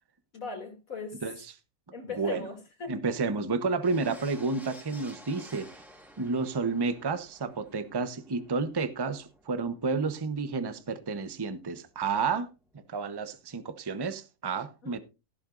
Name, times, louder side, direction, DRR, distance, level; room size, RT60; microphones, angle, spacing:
voice 1, 0.3-1.2 1.9-3.0 14.8-15.0, left 4 dB, 55° left, 3.0 m, -39 dB
voice 2, 2.9-5.7 6.2-12.5 12.9-15.0, right 4 dB, 20° right, 0.7 m, -30 dB
sound 1, 3.8-12.9 13.2-13.4, equal, ahead, 2.3 m, -54 dB
14.0 x 12.5 x 2.5 m
omnidirectional pair, 1.8 m